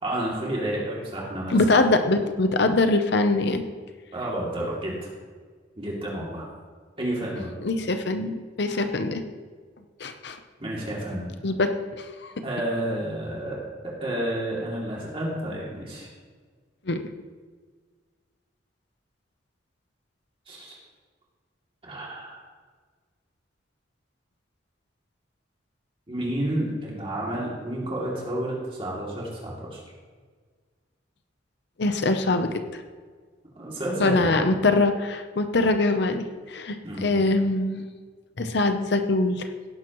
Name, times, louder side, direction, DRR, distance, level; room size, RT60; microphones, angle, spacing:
voice 1, 0.0-1.6 4.1-5.1 5.8-6.5 7.0-7.5 10.6-11.3 12.4-16.1 20.5-20.8 21.8-22.4 26.1-29.8 33.6-34.3 36.8-37.1, right 1 dB, 30° right, -4 dB, 2.7 m, -30 dB
voice 2, 1.5-3.6 7.6-9.2 10.0-10.4 11.4-11.7 12.0-12.4 16.9-17.0 31.8-32.8 34.0-37.9 38.4-39.5, left 2 dB, 60° left, 7 dB, 0.7 m, -23 dB
16.5 x 10.5 x 3.1 m, 1.5 s
head